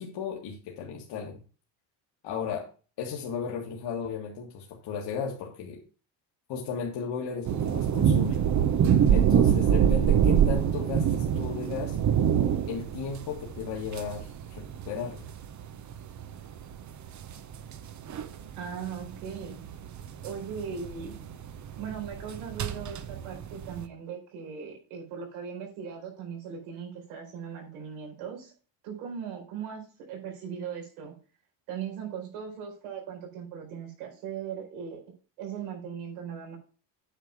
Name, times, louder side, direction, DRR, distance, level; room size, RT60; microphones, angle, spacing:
voice 1, 0.0-1.4 2.2-2.7 3.0-5.8 6.5-8.4 9.1-12.0 12.7-15.2, left 6 dB, 55° left, -1 dB, 1.9 m, -35 dB
sound 1, 7.4-23.8, right 9 dB, 35° right, 0.9 m, -26 dB
voice 2, 18.6-19.6 20.2-21.2 21.8-28.5 28.8-31.2 31.7-35.0 35.4-36.6, right 7 dB, 90° right, 0 dB, 4.5 m, -38 dB
9.0 x 4.7 x 6.0 m, 0.37 s
cardioid pair, 115°, 49 cm